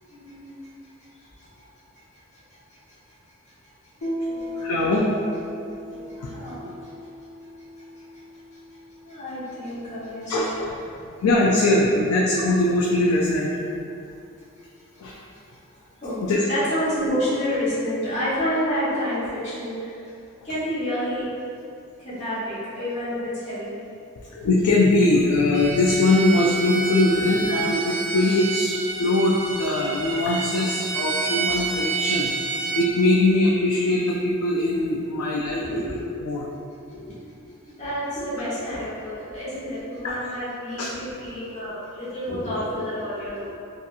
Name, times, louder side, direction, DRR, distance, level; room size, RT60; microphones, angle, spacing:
voice 1, 0.1-0.6 4.3-4.5 6.3-6.7 9.0-10.7 12.0-12.1 16.0-16.2 16.5-19.8 20.4-21.3 22.0-23.7 27.1-27.3 35.6-35.9 36.9-37.1 37.8-43.5, equal, 35° left, -12 dB, 1.0 m, -29 dB
Piano, 4.0-11.3, left 1 dB, 65° left, 0.7 m, -37 dB
voice 2, 4.4-5.1 5.4-5.5 5.9-6.3 10.3-10.8 11.2-13.5 15.0-15.2 16.2-16.4 24.3-28.7 29.0-35.6 36.2-36.5 40.0-40.1 40.8-40.9, left 2 dB, 85° left, -4 dB, 0.3 m, -21 dB
Bowed string instrument, 25.5-32.9, right 4 dB, 60° right, 0.3 m, -29 dB
2.7 x 2.4 x 2.3 m, 2.5 s
head